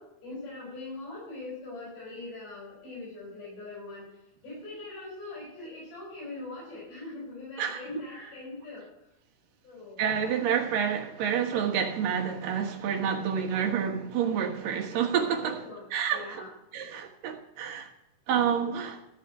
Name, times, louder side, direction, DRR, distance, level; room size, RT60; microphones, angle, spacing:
voice 1, 0.0-9.1 9.6-10.1 13.5-13.8 15.4-16.5, left 2 dB, 80° left, 7.3 m, -42 dB
voice 2, 10.0-15.6 15.9-16.2 16.7-17.9 18.3-19.0, right 8 dB, 75° right, 3.0 m, -28 dB
14.5 x 5.0 x 8.7 m
omnidirectional pair, 4.0 m